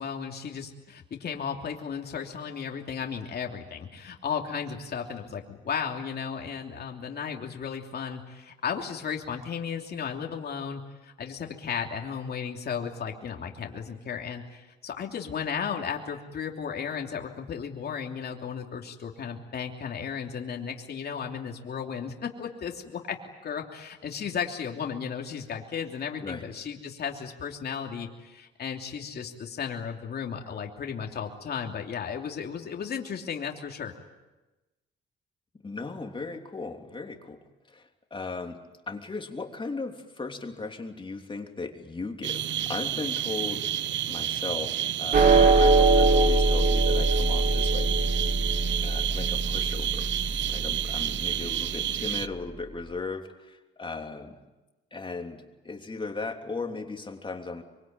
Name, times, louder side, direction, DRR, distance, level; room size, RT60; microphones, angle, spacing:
voice 1, 0.0-23.2 23.4-33.9, left 7 dB, 55° left, 1 dB, 3.0 m, -34 dB
voice 2, 35.6-38.6 38.9-43.7 44.1-48.0 48.8-50.1 50.5-54.4 54.9-57.6, left 3 dB, 25° left, 4 dB, 3.2 m, -37 dB
sound 1, 42.2-52.3, right 11 dB, 65° right, 0.8 m, -30 dB
sound 2, 45.1-51.7, right 3 dB, 45° right, 2.0 m, -23 dB
24.5 x 24.0 x 9.1 m, 1.1 s
cardioid pair, 90°, 20 cm